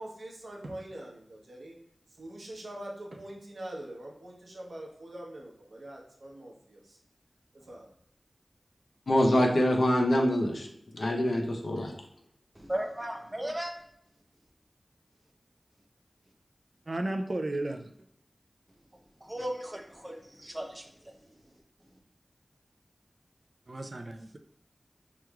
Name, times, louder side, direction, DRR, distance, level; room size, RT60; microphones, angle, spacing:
voice 1, 0.0-1.8 2.1-7.0 7.5-7.9, right 1 dB, 85° right, -2 dB, 0.8 m, -43 dB
voice 2, 9.1-10.7 10.9-11.9, left 1 dB, 80° left, 1 dB, 0.7 m, -25 dB
voice 3, 12.7-13.7 19.2-21.1, right 1 dB, 20° right, 3 dB, 0.7 m, -36 dB
voice 4, 16.9-17.9 23.7-24.4, right 1 dB, 55° right, 6 dB, 0.3 m, -33 dB
4.8 x 3.0 x 2.3 m, 0.73 s
wide cardioid pair, 55°, 0 cm